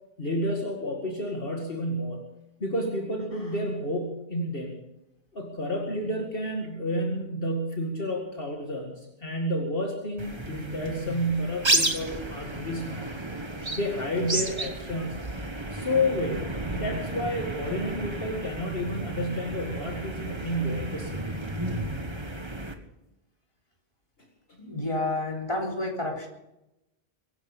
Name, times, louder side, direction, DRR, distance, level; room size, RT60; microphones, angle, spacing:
voice 1, 0.2-2.3 2.6-4.8 5.3-13.1 13.7-15.2 15.7-21.2 24.5-24.6, equal, 60° left, 1 dB, 2.3 m, -30 dB
sound 1, 10.2-22.7, right 2 dB, 25° right, 1.5 m, -32 dB
voice 2, 24.6-26.3, left 2 dB, 30° left, -1 dB, 3.9 m, -30 dB
24.0 x 11.0 x 5.4 m, 0.89 s
omnidirectional pair, 1.1 m